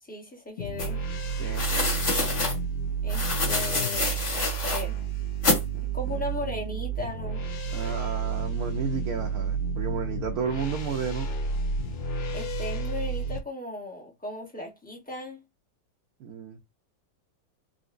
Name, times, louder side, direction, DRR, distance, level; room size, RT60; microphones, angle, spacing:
voice 1, 0.0-1.0 3.0-5.0 5.8-7.5 12.3-15.4, left 2 dB, 5° left, 0.7 m, -37 dB
sound 1, 0.6-13.4, right 4 dB, 60° left, 0.6 m, -31 dB
sound 2, 0.8-0.9 1.5-2.6 3.1-4.8 5.4-5.6, left 2 dB, 45° left, 1.7 m, -27 dB
voice 2, 1.4-1.9 5.7-6.3 7.7-11.3 16.2-16.6, right 7 dB, 70° right, 1.0 m, -33 dB
3.9 x 2.7 x 2.5 m
omnidirectional pair, 1.8 m